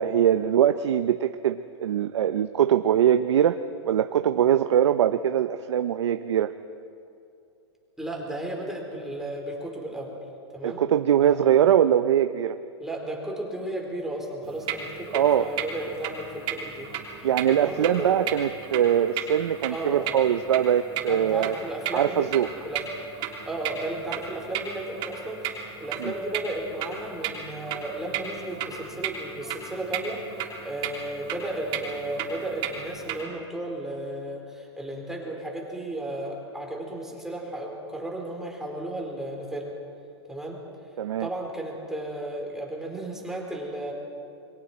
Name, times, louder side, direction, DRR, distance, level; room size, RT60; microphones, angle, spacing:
voice 1, 0.0-3.6 3.9-6.5 10.6-12.6 15.1-15.5 17.2-21.6 21.9-22.5 26.0-26.1 41.0-41.3, right 10 dB, 85° right, 10 dB, 0.7 m, -22 dB
voice 2, 8.0-10.1 10.5-10.8 11.2-11.6 12.8-16.9 17.5-18.1 19.7-20.2 20.9-22.3 22.6-22.9 23.5-30.2 30.6-39.7 40.3-40.6 41.2-43.9, right 1 dB, 5° right, -1 dB, 4.0 m, -34 dB
sound 1, 14.4-33.2, right 8 dB, 35° right, 3.4 m, -35 dB
29.0 x 23.0 x 4.4 m, 2.6 s
hypercardioid pair, 130°, 14 cm